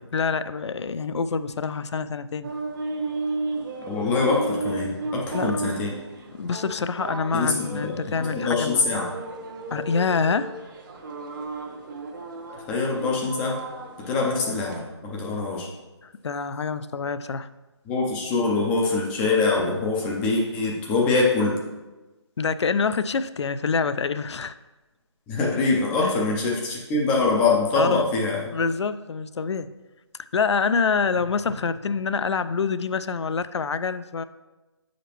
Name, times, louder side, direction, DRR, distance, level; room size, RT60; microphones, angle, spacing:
voice 1, 0.1-2.5 4.0-4.2 5.3-5.7 6.4-8.8 9.7-10.5 12.5-12.6 16.0-17.5 22.4-24.6 26.0-26.2 27.8-28.1 28.5-29.7 30.3-34.2, left 5 dB, 75° left, 14 dB, 0.4 m, -26 dB
sound 1, 2.4-14.8, right 3 dB, 45° right, 1.1 m, -34 dB
voice 2, 3.8-5.9 7.3-7.5 7.8-8.0 8.3-9.1 12.7-13.5 14.1-15.7 17.9-21.6 25.3-28.4, left 3 dB, 5° left, -2 dB, 0.4 m, -24 dB
7.8 x 5.1 x 3.0 m, 1.1 s
figure-of-eight pair, 160°, 15 cm